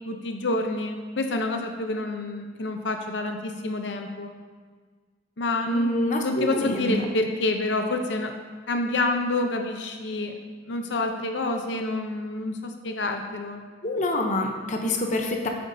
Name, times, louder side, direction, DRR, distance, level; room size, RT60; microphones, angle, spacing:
voice 1, 0.1-4.3 5.4-5.9 6.2-8.3 8.7-10.4 10.7-13.6, left 2 dB, 85° left, 4 dB, 0.7 m, -28 dB
voice 2, 5.7-6.9 13.8-15.5, left 1 dB, 45° left, 2 dB, 0.8 m, -26 dB
9.9 x 8.1 x 2.7 m, 1.5 s
head